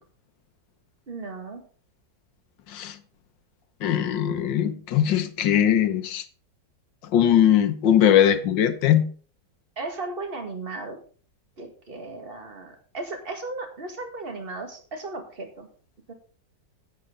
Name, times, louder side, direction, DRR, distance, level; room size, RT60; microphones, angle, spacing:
voice 1, 1.1-1.6 9.8-11.0 11.6-15.7 16.1-16.2, right 3 dB, 30° right, 4 dB, 2.0 m, -36 dB
voice 2, 3.8-6.2 7.1-9.1, left 10 dB, 85° left, 10 dB, 1.7 m, -20 dB
10.5 x 9.1 x 3.8 m, 0.41 s
omnidirectional pair, 1.9 m